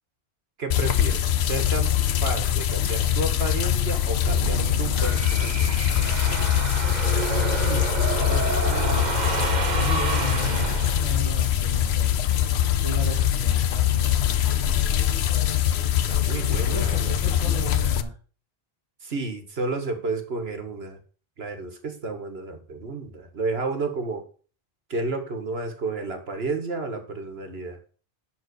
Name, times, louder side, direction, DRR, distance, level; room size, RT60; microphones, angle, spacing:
voice 1, 0.6-1.9 2.2-5.7 7.6-9.2 16.1-17.7 19.0-21.0 21.4-24.2 24.9-27.8, right 3 dB, 80° right, 7 dB, 1.8 m, -32 dB
sound 1, 0.7-18.0, left 11 dB, 85° left, 1.0 m, -23 dB
sound 2, 4.1-11.3, right 5 dB, 50° right, 1.0 m, -29 dB
voice 2, 8.6-8.9 9.8-12.1 12.8-14.2 16.5-18.1, right 2 dB, 35° left, -2 dB, 2.5 m, -35 dB
11.0 x 4.0 x 6.8 m, 0.39 s
omnidirectional pair, 1.0 m